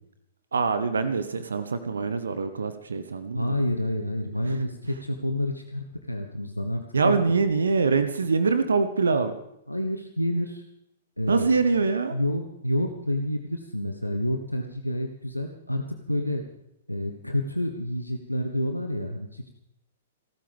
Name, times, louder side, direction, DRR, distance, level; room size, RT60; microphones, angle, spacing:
voice 1, 0.5-3.6 4.5-4.6 6.9-9.3 11.3-12.2, right 4 dB, 65° right, 11 dB, 1.1 m, -24 dB
voice 2, 3.3-7.1 9.7-10.6 11.2-11.5 12.1-16.4 16.9-19.5, left 1 dB, 90° left, 5 dB, 1.2 m, -29 dB
30.0 x 12.5 x 3.5 m, 0.82 s
figure-of-eight pair, 110°, 0 cm